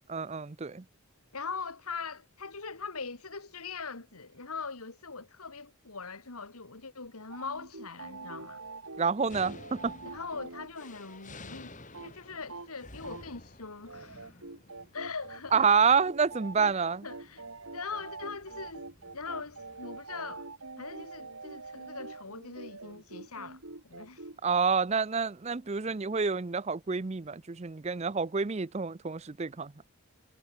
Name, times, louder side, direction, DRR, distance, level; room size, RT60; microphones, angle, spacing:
voice 1, 0.1-0.8 9.0-9.9 15.5-17.1 24.4-29.7, right 5 dB, 30° right, 0.5 m, -28 dB
voice 2, 1.3-8.6 10.1-14.3 14.9-15.7 17.0-17.4 17.7-18.9 19.1-20.5 20.8-24.2, left 4 dB, 85° left, 2.3 m, -41 dB
sound 1, 7.3-10.7 11.0-11.1 11.3-11.4 11.7-12.1 12.4-12.8 13.0-13.5 13.8-24.4, right 3 dB, 70° right, 2.4 m, -45 dB
sound 2, 9.3-20.1, left 2 dB, 35° left, 5.0 m, -53 dB
head